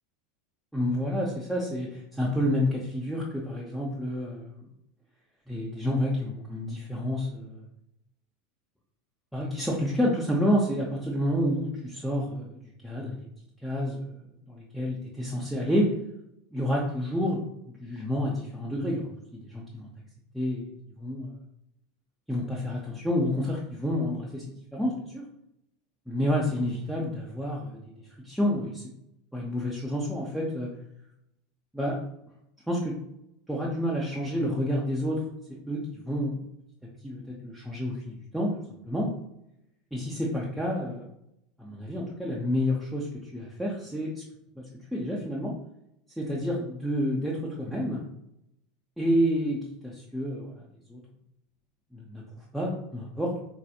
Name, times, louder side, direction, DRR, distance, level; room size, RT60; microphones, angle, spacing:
voice 1, 0.7-4.7 5.5-7.7 9.3-13.3 13.6-14.1 14.5-15.9 16.5-17.4 17.8-19.9 20.3-20.7 21.0-21.3 22.3-24.4 24.7-25.2 26.1-27.8 28.2-28.8 29.3-30.7 31.7-32.0 32.7-32.9 33.5-35.2 35.7-36.4 37.0-38.5 38.9-39.1 39.9-41.1 41.6-44.2 44.6-45.5 46.2-48.0 49.0-50.6 50.9-51.0 51.9-52.2 52.5-53.3, equal, ahead, -5 dB, 0.6 m, -29 dB
4.0 x 2.8 x 2.3 m, 0.82 s
figure-of-eight pair, 80°, 0 cm